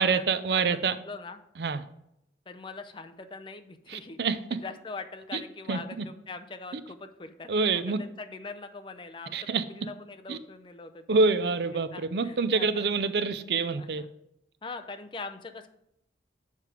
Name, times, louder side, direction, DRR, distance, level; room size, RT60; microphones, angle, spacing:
voice 1, 0.0-1.0 1.6-1.8 3.9-4.6 5.3-5.4 5.7-6.1 7.5-8.0 9.3-9.6 10.3-10.4 11.1-14.0, right 4 dB, 65° right, 13 dB, 0.5 m, -26 dB
voice 2, 0.5-1.4 2.5-4.2 4.5-11.2 11.9-12.9 13.8-14.1 14.6-15.7, left 3 dB, 25° left, 8 dB, 0.5 m, -42 dB
6.7 x 4.9 x 5.0 m, 0.78 s
head